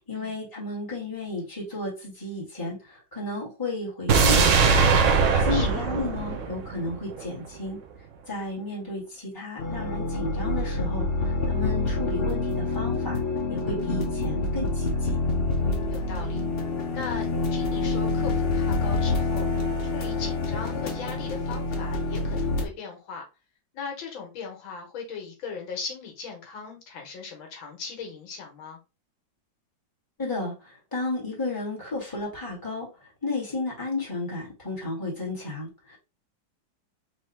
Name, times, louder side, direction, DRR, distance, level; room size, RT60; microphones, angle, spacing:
voice 1, 0.0-4.9 5.4-7.8 8.3-13.2 13.5-15.2 30.2-32.9 33.2-36.0, left 2 dB, 10° left, 1.9 m, -33 dB
sound 1, 4.1-7.2 7.5-7.6, right 5 dB, 65° right, 0.8 m, -21 dB
voice 2, 5.3-5.8 15.9-16.5 16.9-17.3 17.5-19.5 19.8-23.2 23.7-28.8, left 5 dB, 80° left, 1.9 m, -38 dB
sound 2, 9.6-22.6, left 3 dB, 60° left, 0.6 m, -27 dB
4.2 x 3.1 x 3.3 m
omnidirectional pair, 2.1 m